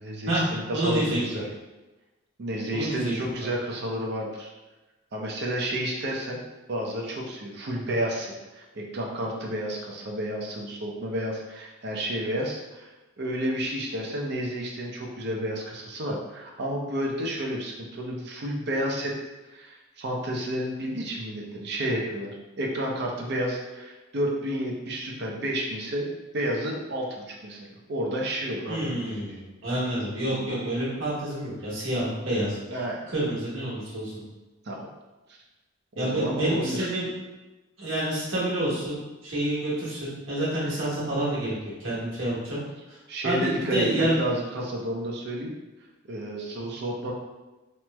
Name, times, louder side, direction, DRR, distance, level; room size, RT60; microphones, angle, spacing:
voice 1, 0.0-1.4 2.4-4.5 5.1-6.4 6.7-12.9 13.2-19.1 19.5-26.1 26.3-29.2 30.3-30.5 32.0-32.4 32.7-33.0 34.6-34.9 35.3-35.4 36.0-36.9 43.1-45.5 46.1-47.1, equal, 55° right, -1 dB, 0.5 m, -31 dB
voice 2, 0.7-1.2 2.7-3.1 28.7-32.6 33.1-34.1 36.0-37.1 37.8-41.5 41.8-42.6 42.9-43.0 43.2-44.2, right 1 dB, 85° right, -7 dB, 1.2 m, -28 dB
3.0 x 2.0 x 3.3 m, 1.1 s
head